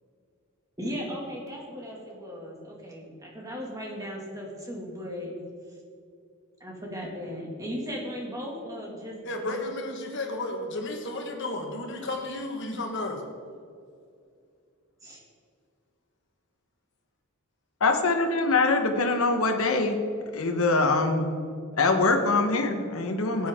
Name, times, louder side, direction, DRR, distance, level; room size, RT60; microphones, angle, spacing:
voice 1, 0.8-5.3 6.6-9.7 15.0-15.2, equal, 15° right, -2 dB, 2.2 m, -37 dB
voice 2, 9.2-13.2 23.4-23.5, left 2 dB, 55° left, 2 dB, 1.6 m, -33 dB
voice 3, 17.8-19.9 20.3-21.3 21.8-23.5, left 3 dB, 75° left, 5 dB, 1.2 m, -23 dB
14.5 x 9.2 x 3.7 m, 2.4 s
head